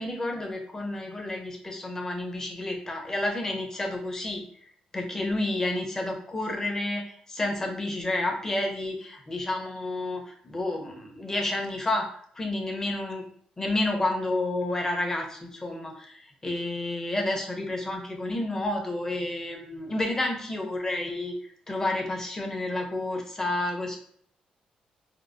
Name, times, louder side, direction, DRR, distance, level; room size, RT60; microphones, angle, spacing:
voice 1, 0.0-4.4 4.9-12.1 12.4-13.2 13.6-24.0, left 2 dB, 20° left, 1 dB, 0.7 m, -30 dB
4.5 x 2.0 x 2.5 m, 0.63 s
cardioid pair, 105°, 3 cm